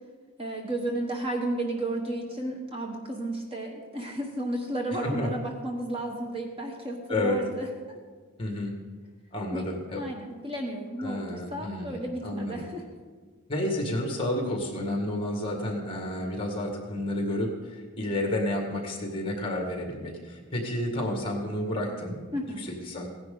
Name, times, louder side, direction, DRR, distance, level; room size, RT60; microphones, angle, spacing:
voice 1, 0.4-8.0 9.5-9.6 10.0-12.8 22.3-22.7, right 1 dB, 25° right, 1 dB, 1.1 m, -33 dB
voice 2, 7.1-7.4 8.4-8.7 9.3-10.1 11.0-12.7 13.5-22.2 22.6-23.1, left 1 dB, 25° left, 2 dB, 1.8 m, -30 dB
16.5 x 10.5 x 3.9 m, 1.5 s
head